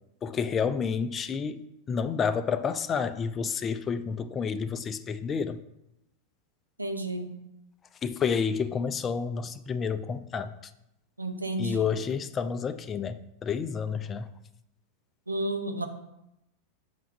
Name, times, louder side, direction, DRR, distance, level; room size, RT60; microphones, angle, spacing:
voice 1, 0.2-1.6 1.9-5.6 8.0-10.5 11.6-14.3, left 6 dB, 25° left, 12 dB, 0.4 m, -30 dB
voice 2, 6.8-7.3 11.2-11.9 15.3-15.9, right 1 dB, 85° right, 6 dB, 0.6 m, -31 dB
5.6 x 3.5 x 5.9 m, 0.86 s
figure-of-eight pair, 90°, 0 cm